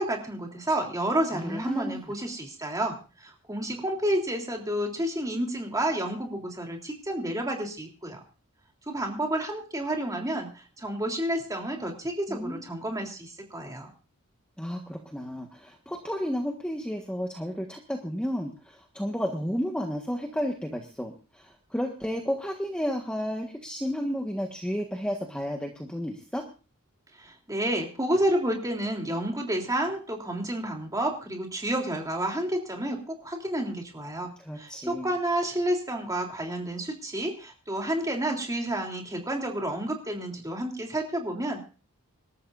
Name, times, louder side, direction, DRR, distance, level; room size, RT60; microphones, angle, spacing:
voice 1, 0.0-8.2 8.9-13.9 27.2-34.3 34.6-41.6, right 1 dB, 15° right, 1 dB, 3.4 m, -30 dB
voice 2, 1.3-2.1 12.3-12.6 14.6-26.4 34.4-35.1, equal, 5° left, 1 dB, 1.5 m, -32 dB
27.0 x 13.5 x 2.6 m, 0.35 s
head